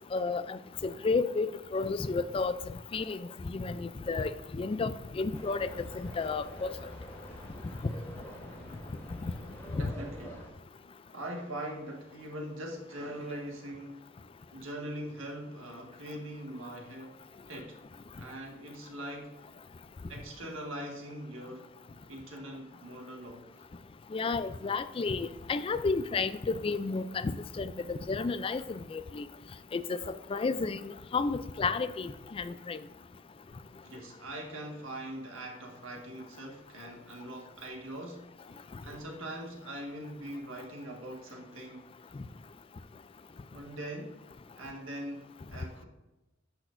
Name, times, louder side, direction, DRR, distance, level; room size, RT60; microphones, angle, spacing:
voice 1, 0.1-2.6 2.9-6.7 9.2-9.3 9.7-9.9 24.1-29.3 29.7-32.8, left 4 dB, 25° left, 12 dB, 0.3 m, -32 dB
sound 1, 5.3-10.5, equal, 10° left, 1.2 m, -46 dB
voice 2, 9.8-10.4 11.1-14.0 14.5-17.2 17.5-17.8 18.2-19.3 20.1-21.7 22.0-23.6 33.8-41.9 43.5-44.1 44.6-45.8, right 1 dB, 85° right, 0 dB, 1.7 m, -42 dB
10.5 x 6.1 x 2.6 m, 1.0 s
head